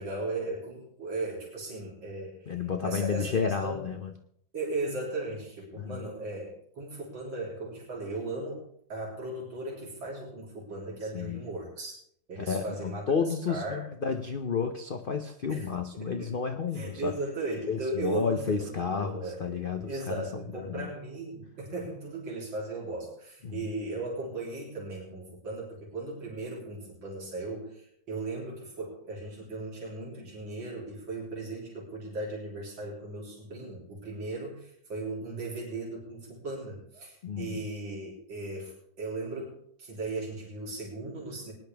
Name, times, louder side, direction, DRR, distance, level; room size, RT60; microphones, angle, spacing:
voice 1, 0.0-2.3 2.8-3.3 3.6-3.8 4.5-12.0 12.3-13.1 13.5-13.8 15.5-15.7 15.9-16.3 16.7-39.5 39.8-41.5, right 2 dB, 90° right, -4 dB, 3.9 m, -37 dB
voice 2, 2.5-4.1 5.8-6.0 11.1-11.4 12.4-17.1 17.7-20.9 23.4-23.6 37.2-37.6, left 5 dB, 75° left, 6 dB, 0.5 m, -31 dB
19.5 x 10.5 x 3.4 m, 0.68 s
omnidirectional pair, 2.0 m